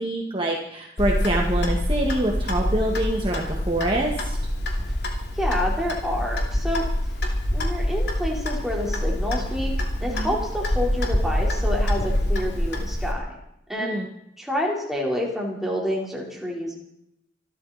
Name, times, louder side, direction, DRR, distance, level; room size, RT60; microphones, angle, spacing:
voice 1, 0.0-4.4 10.1-10.3 13.8-14.1, right 1 dB, 30° right, -1 dB, 1.9 m, -25 dB
Clock, 1.0-13.1, left 1 dB, 65° left, 2.8 m, -25 dB
voice 2, 5.4-6.9 7.5-13.4 13.7-14.0 14.4-16.8, left 1 dB, ahead, -3 dB, 4.0 m, -28 dB
25.5 x 13.0 x 4.3 m, 0.78 s
head